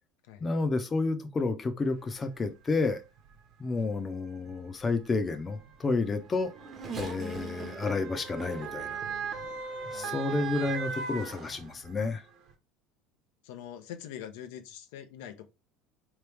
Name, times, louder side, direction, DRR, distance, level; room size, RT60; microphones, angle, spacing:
voice 1, 0.4-3.0 3.6-6.5 6.9-9.0 9.9-12.2, left 3 dB, 20° left, 0.6 m, -30 dB
Motor vehicle (road) / Siren, 2.1-2.2 3.2-3.4 4.5-12.1 12.5-12.6, right 5 dB, 60° right, 1.3 m, -39 dB
Race car auto racing / Accelerating revving vroom, 5.8-10.3 11.0-11.1 12.3-12.4, right 3 dB, 30° right, 0.9 m, -43 dB
voice 2, 9.9-10.5 13.4-15.5, left 10 dB, 85° left, 0.7 m, -44 dB
3.9 x 3.1 x 3.4 m
cardioid pair, 135°, 0 cm